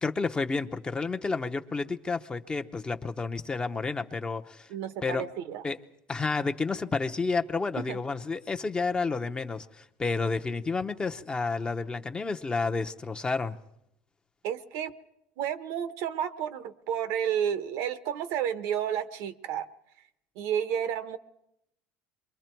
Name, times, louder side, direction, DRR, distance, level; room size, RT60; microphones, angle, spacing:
voice 1, 0.0-4.7 5.0-5.3 5.6-5.8 6.1-13.6, left 4 dB, 15° left, 6 dB, 0.8 m, -30 dB
voice 2, 4.7-5.6 7.8-8.0 14.4-14.9 15.4-19.7 20.4-21.2, right 9 dB, 70° right, 12 dB, 1.1 m, -31 dB
27.5 x 23.0 x 4.6 m, 0.81 s
supercardioid pair, 125°, 5 cm